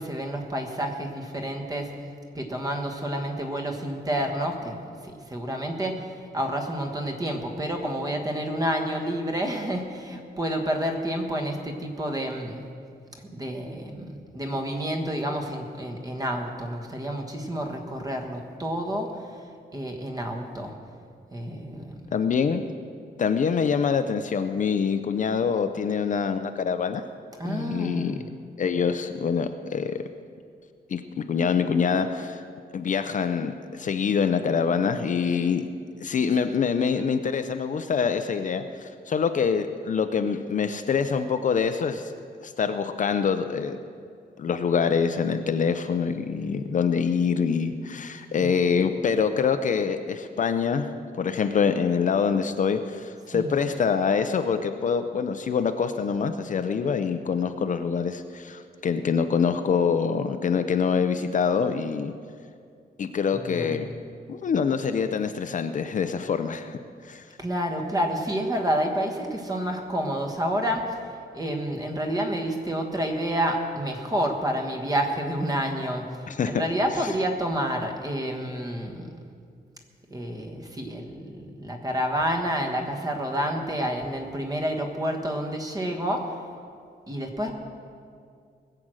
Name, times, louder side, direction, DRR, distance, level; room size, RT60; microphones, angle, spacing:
voice 1, 0.0-1.9 2.3-4.8 5.0-12.6 13.2-19.2 19.7-20.7 21.3-22.1 27.4-28.2 48.4-48.7 53.3-53.5 63.4-63.7 67.4-71.0 71.3-76.0 76.5-79.2 80.1-86.3 87.1-87.5, equal, 20° right, 3 dB, 1.4 m, -29 dB
voice 2, 22.1-22.6 23.2-27.0 27.4-28.2 28.6-30.0 30.9-31.0 31.3-32.4 32.7-35.6 36.0-42.1 42.4-43.8 44.4-50.9 51.2-62.1 63.0-63.9 64.3-67.2 76.3-76.6, left 6 dB, 50° left, 8 dB, 0.6 m, -25 dB
20.5 x 7.8 x 6.3 m, 2.3 s
wide cardioid pair, 165°, 17 cm